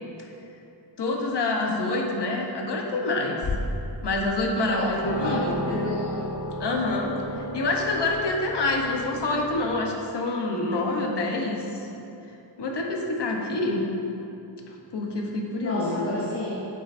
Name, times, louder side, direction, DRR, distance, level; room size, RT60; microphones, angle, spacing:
voice 1, 1.0-3.4 4.0-5.6 6.6-11.6 12.6-13.9 14.9-16.2, left 2 dB, 60° left, 1 dB, 1.0 m, -27 dB
sound 1, 3.4-3.9 4.5-4.6 5.0-9.7, left 1 dB, 85° left, 1.0 m, -33 dB
voice 2, 4.7-5.4 5.7-6.3 15.6-16.6, left 1 dB, 30° left, -6 dB, 0.9 m, -30 dB
8.4 x 7.5 x 2.6 m, 2.8 s
wide cardioid pair, 165°, 45 cm